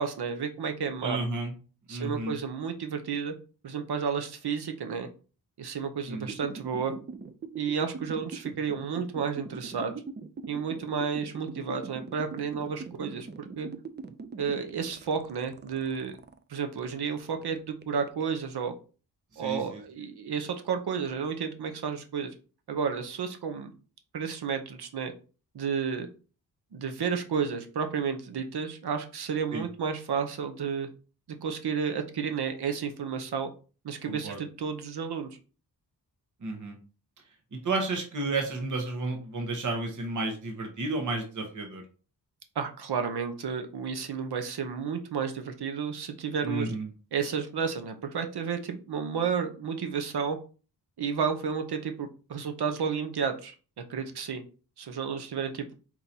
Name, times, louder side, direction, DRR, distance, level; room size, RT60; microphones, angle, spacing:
voice 1, 0.0-1.2 1.9-3.3 3.6-5.1 5.6-6.9 7.6-9.9 10.5-13.3 13.6-13.7 14.4-16.1 16.5-18.7 19.4-22.3 22.7-23.7 24.1-25.1 25.5-26.1 26.7-30.9 31.4-33.5 33.8-35.3 42.6-46.7 47.1-50.4 51.0-54.4 54.8-55.7, right 6 dB, 70° right, 7 dB, 0.8 m, -31 dB
voice 2, 1.0-1.5 1.9-2.3 6.1-6.3 19.3-19.8 29.5-29.7 34.1-34.4 36.4-36.8 37.5-41.8 46.4-46.9, right 2 dB, 45° right, 3 dB, 1.0 m, -32 dB
sound 1, 6.3-16.4 16.8-18.5, right 5 dB, 30° right, 0.4 m, -41 dB
4.4 x 3.8 x 2.8 m, 0.36 s
wide cardioid pair, 105°, 41 cm